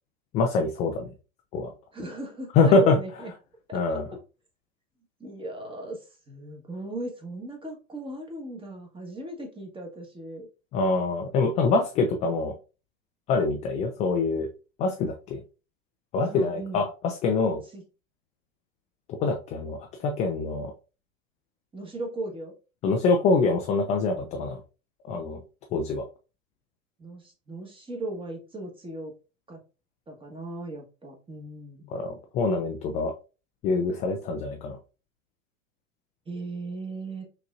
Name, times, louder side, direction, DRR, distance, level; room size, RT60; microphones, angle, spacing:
voice 1, 0.3-1.1 1.5-1.7 2.6-3.0 3.7-4.0 10.7-12.5 13.3-14.5 14.8-15.4 16.1-17.6 19.2-20.7 22.8-24.6 25.0-25.4 25.7-26.0 31.9-33.1 33.6-34.8, left 3 dB, 20° left, 4 dB, 0.4 m, -24 dB
voice 2, 1.9-3.3 3.7-4.2 5.2-10.5 16.2-16.8 17.7-17.8 21.7-22.5 27.0-29.1 29.5-29.6 30.1-31.9 36.3-37.2, right 2 dB, 15° right, 1 dB, 1.3 m, -38 dB
5.9 x 2.9 x 2.4 m, 0.32 s
figure-of-eight pair, 90°, 40 cm